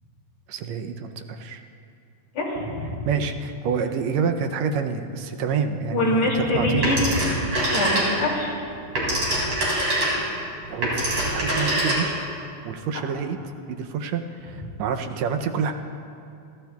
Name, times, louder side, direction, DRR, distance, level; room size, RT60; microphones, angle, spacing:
voice 1, 0.5-1.6 3.0-6.9 10.7-12.1 12.6-13.4 13.7-15.7, right 6 dB, 75° right, 6 dB, 1.7 m, -27 dB
voice 2, 2.4-2.9 5.9-7.3 7.7-8.5, left 1 dB, 60° left, -4 dB, 3.7 m, -24 dB
Telephone, 6.8-8.4 8.7-12.3, right 1 dB, 55° right, 4.9 m, -24 dB
29.5 x 12.5 x 2.3 m, 2.4 s
omnidirectional pair, 3.6 m